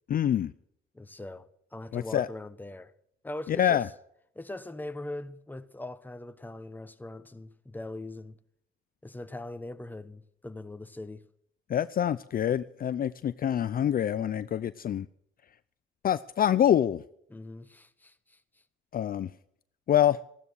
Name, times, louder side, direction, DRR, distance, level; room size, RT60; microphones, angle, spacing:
voice 1, 0.1-0.5 1.9-2.3 3.5-3.9 11.7-15.1 16.0-17.0 18.9-19.3 19.9-20.2, left 10 dB, 45° left, 0.5 m, -26 dB
voice 2, 0.9-2.9 3.2-3.9 4.3-8.4 9.0-11.2 17.3-18.4, left 2 dB, 10° left, 1.0 m, -41 dB
15.0 x 12.5 x 6.4 m
cardioid pair, 90°, 20 cm